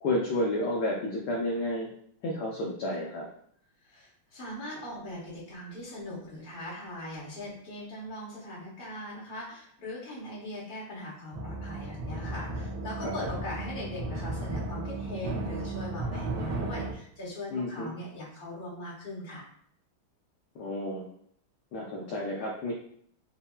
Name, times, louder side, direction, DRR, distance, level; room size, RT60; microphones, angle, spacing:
voice 1, 0.0-1.9 2.2-3.3 13.0-13.1 17.5-17.9 20.6-21.1 21.7-22.7, left 1 dB, 70° left, -2 dB, 1.0 m, -31 dB
voice 2, 3.8-19.4, left 1 dB, 30° left, -6 dB, 1.2 m, -40 dB
sound 1, 11.3-16.9, right 2 dB, 75° right, 1.5 m, -35 dB
5.3 x 2.2 x 2.2 m, 0.64 s
omnidirectional pair, 2.3 m